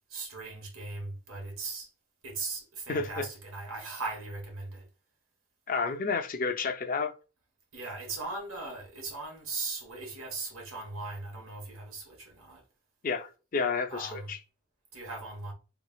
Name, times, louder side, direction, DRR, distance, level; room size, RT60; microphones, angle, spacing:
voice 1, 0.1-1.9 2.2-4.9 7.7-12.6 13.9-14.3 14.9-15.5, right 3 dB, 90° right, 1.2 m, -39 dB
voice 2, 2.9-3.3 5.7-7.1 13.0-14.4, left 4 dB, 40° left, 0.5 m, -30 dB
3.8 x 3.1 x 2.3 m
head